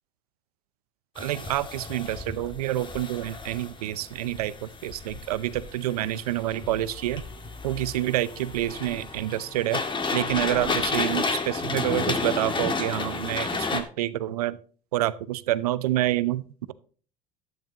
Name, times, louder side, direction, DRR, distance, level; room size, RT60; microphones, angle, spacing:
sound 1, 1.2-13.8, left 4 dB, 25° left, 1.7 m, -32 dB
voice 1, 1.2-7.2 7.6-9.8 10.1-14.6 14.9-16.7, right 14 dB, 85° right, 17 dB, 0.6 m, -28 dB
12.5 x 11.0 x 2.9 m, 0.41 s
hypercardioid pair, 80°, 19 cm